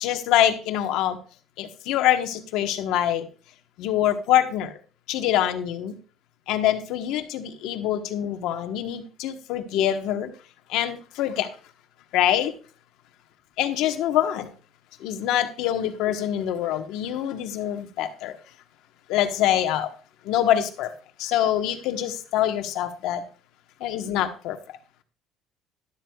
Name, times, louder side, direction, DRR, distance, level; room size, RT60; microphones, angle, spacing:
voice 1, 0.0-1.2 1.6-3.2 3.8-4.7 5.1-5.9 6.5-10.3 10.7-11.5 12.1-12.5 13.6-14.5 15.0-18.3 19.1-19.9 20.3-20.9 21.2-23.2 23.8-24.6, left 11 dB, 75° left, 6 dB, 1.2 m, -24 dB
12.5 x 12.0 x 2.4 m, 0.38 s
cardioid pair, 170°, 0 cm